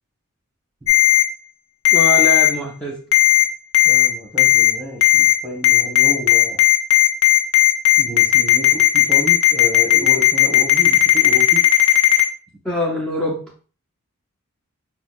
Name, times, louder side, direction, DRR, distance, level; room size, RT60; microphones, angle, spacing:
Ringtone, 0.9-1.2 1.8-2.5 3.1-3.4 3.7-4.1 4.4-4.7 5.0-5.3 5.6-12.2, left 14 dB, 65° left, 0.6 m, -13 dB
voice 1, 1.9-3.0 12.6-13.5, equal, 5° left, -5 dB, 0.5 m, -23 dB
voice 2, 3.8-6.6 8.0-11.6, left 1 dB, 15° right, 0 dB, 1.0 m, -30 dB
5.9 x 2.0 x 2.3 m, 0.39 s
head